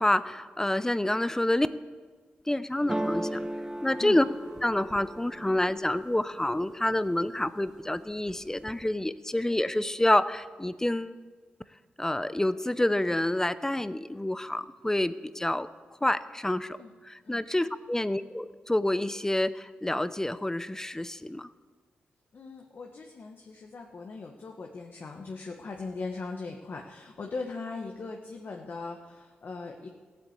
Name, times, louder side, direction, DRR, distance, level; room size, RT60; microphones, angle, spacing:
voice 1, 0.0-1.7 2.5-3.4 3.8-4.2 4.6-11.1 12.0-15.7 16.0-16.8 17.0-21.5, left 1 dB, 15° left, 14 dB, 0.7 m, -28 dB
sound 1, 2.9-6.8 7.2-7.8 8.1-8.9, right 1 dB, 15° right, 0.9 m, -36 dB
voice 2, 22.3-29.9, left 3 dB, 60° left, 2 dB, 1.3 m, -39 dB
16.0 x 8.5 x 8.2 m, 1.4 s
cardioid pair, 60°, 4 cm